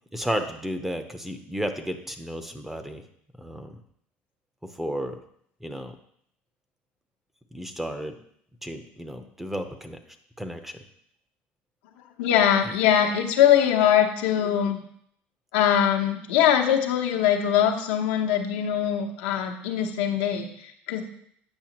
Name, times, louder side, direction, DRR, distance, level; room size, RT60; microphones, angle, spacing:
voice 1, 0.1-3.0 3.4-3.8 4.8-5.2 5.6-6.0 7.5-8.1 8.6-10.0 10.4-10.8, equal, 5° right, 7 dB, 0.7 m, -33 dB
voice 2, 12.2-14.8 15.5-21.0, left 9 dB, 85° left, 3 dB, 0.9 m, -22 dB
8.8 x 5.6 x 3.0 m, 0.68 s
supercardioid pair, 100°, 5 cm